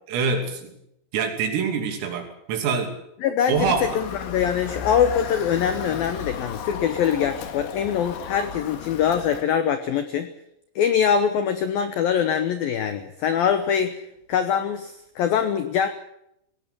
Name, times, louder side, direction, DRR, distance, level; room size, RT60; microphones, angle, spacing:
voice 1, 0.1-0.8 1.1-3.0 3.5-3.9, right 5 dB, 85° right, 4 dB, 5.5 m, -25 dB
voice 2, 3.2-10.3 10.8-14.0 14.3-15.9, left 8 dB, 90° left, 9 dB, 2.0 m, -23 dB
Motor vehicle (road) / Siren, 3.5-9.4, left 8 dB, 65° left, 3.6 m, -34 dB
19.5 x 17.5 x 8.4 m, 0.78 s
omnidirectional pair, 5.8 m